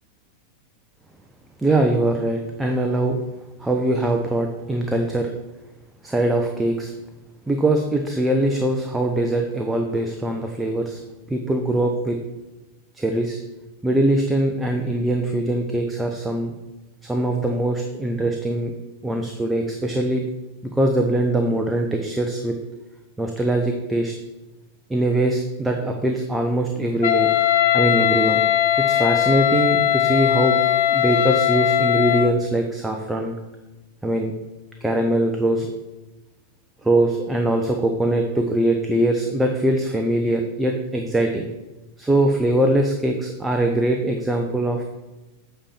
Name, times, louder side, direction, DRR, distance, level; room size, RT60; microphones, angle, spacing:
voice 1, 1.6-3.2 3.6-5.3 6.0-6.9 7.5-11.0 11.3-12.2 12.9-13.4 13.8-16.5 17.0-18.7 19.0-20.2 20.6-22.6 23.2-24.1 24.9-27.3 27.7-28.4 28.8-33.4 34.0-34.3 34.8-35.8 36.8-41.5 42.0-44.8, right 1 dB, 5° right, 2 dB, 0.8 m, -22 dB
Wind instrument woodwind instrument, 27.0-32.4, left 12 dB, 55° left, 0.5 m, -19 dB
8.7 x 4.4 x 7.3 m, 1.1 s
figure-of-eight pair, 90°, 0 cm